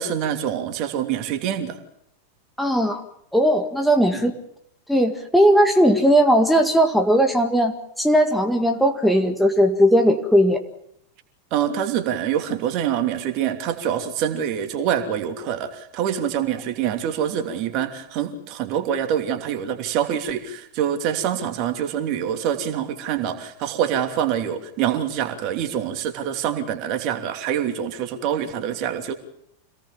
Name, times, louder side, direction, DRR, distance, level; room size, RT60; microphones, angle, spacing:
voice 1, 0.0-1.8 4.1-4.2 11.5-29.1, right 9 dB, 40° right, 7 dB, 2.9 m, -25 dB
voice 2, 2.6-3.0 3.3-4.3 4.9-10.6, equal, ahead, 4 dB, 2.0 m, -18 dB
27.0 x 18.5 x 7.2 m, 0.76 s
figure-of-eight pair, 90°, 0 cm